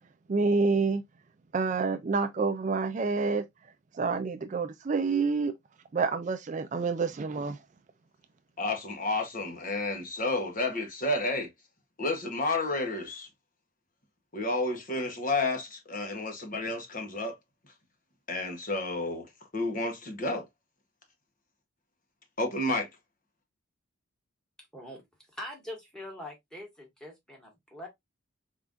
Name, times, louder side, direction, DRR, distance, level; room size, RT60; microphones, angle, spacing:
voice 1, 0.3-1.0 1.5-3.4 3.9-5.5 5.9-7.6, right 4 dB, 35° right, 0.4 m, -28 dB
voice 2, 8.6-11.5 12.0-13.3 14.3-17.4 18.3-20.5 22.4-22.9, left 2 dB, 40° left, 1.1 m, -31 dB
voice 3, 24.6-25.0 25.3-27.9, left 1 dB, 5° left, 1.5 m, -43 dB
4.4 x 3.7 x 2.5 m
head